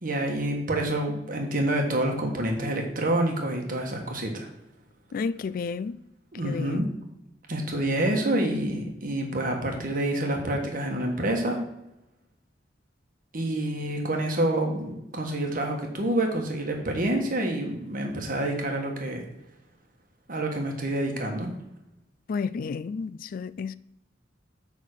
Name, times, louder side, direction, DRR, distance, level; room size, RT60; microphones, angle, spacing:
voice 1, 0.0-4.5 6.3-6.9 7.5-11.6 13.3-19.2 20.3-21.5, right 1 dB, 50° right, 1.4 m, -27 dB
voice 2, 5.1-6.0 6.4-6.9 22.3-23.8, left 5 dB, 50° left, 0.3 m, -31 dB
9.2 x 3.6 x 6.5 m
head